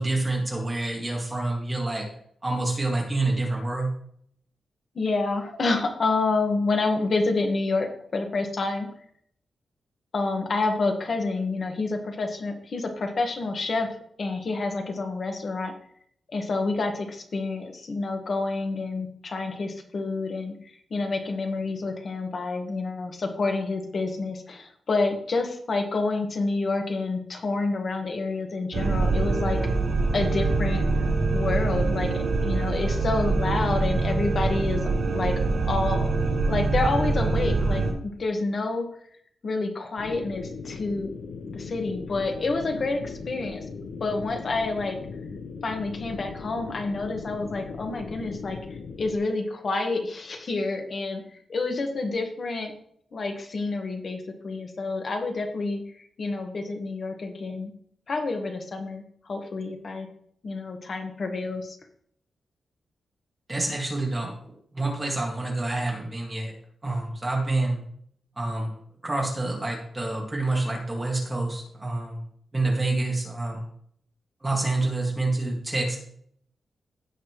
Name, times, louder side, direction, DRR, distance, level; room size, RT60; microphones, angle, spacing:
voice 1, 0.0-2.1 2.4-3.9 63.5-66.5 66.8-67.8 68.4-68.7 69.0-72.2 72.5-73.6 74.4-76.0, right 2 dB, 15° right, -1 dB, 2.1 m, -27 dB
voice 2, 4.9-8.9 10.1-13.9 14.2-15.7 16.3-29.6 30.1-30.8 31.3-35.4 35.7-36.1 36.5-38.9 39.4-41.1 41.5-43.6 44.0-45.0 45.6-48.6 49.0-52.7 53.1-57.7 58.1-60.1 60.4-61.8, left 3 dB, 45° left, 4 dB, 1.5 m, -28 dB
sound 1, 28.7-37.9, right 3 dB, 80° right, 2.9 m, -24 dB
sound 2, 40.0-49.2, left 4 dB, 80° left, 1.0 m, -38 dB
16.5 x 5.9 x 3.1 m, 0.65 s
wide cardioid pair, 165°, 0 cm